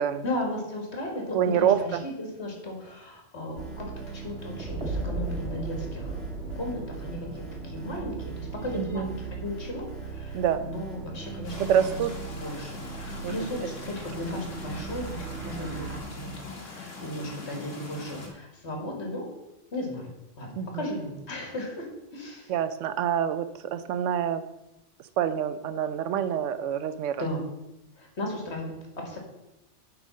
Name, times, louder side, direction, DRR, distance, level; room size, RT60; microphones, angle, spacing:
voice 1, 0.2-3.9 4.1-6.2 6.6-12.0 12.3-16.3 16.6-19.2 19.7-20.1 20.4-20.5 20.7-22.5 27.2-27.4 28.0-29.2, left 1 dB, 60° left, 1 dB, 2.4 m, -35 dB
voice 2, 1.3-2.0 8.7-9.1 10.3-10.6 11.6-12.1 13.2-13.3 20.6-20.8 22.5-24.4 25.2-27.2, right 9 dB, 85° right, 12 dB, 1.0 m, -26 dB
sound 1, 3.6-16.0, right 3 dB, 55° right, 1.8 m, -37 dB
sound 2, 11.4-18.3, left 3 dB, 90° left, 2.0 m, -43 dB
9.0 x 4.6 x 6.3 m, 0.89 s
omnidirectional pair, 1.2 m